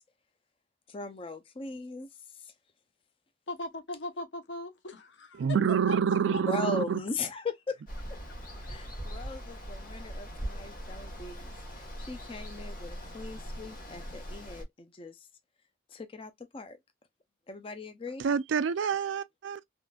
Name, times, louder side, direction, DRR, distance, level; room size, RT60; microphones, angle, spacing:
voice 1, 0.9-2.5 6.3-7.8 8.1-8.2 8.7-15.3 15.9-16.8 17.5-18.2, left 3 dB, 30° left, 0.5 m, -39 dB
voice 2, 3.5-5.5 6.3-6.4, left 1 dB, 70° left, 0.8 m, -39 dB
voice 3, 5.4-7.0 18.2-19.6, right 7 dB, 80° right, 0.3 m, -27 dB
Water, 7.9-14.6, equal, 45° left, 1.6 m, -41 dB
3.6 x 2.5 x 2.3 m
head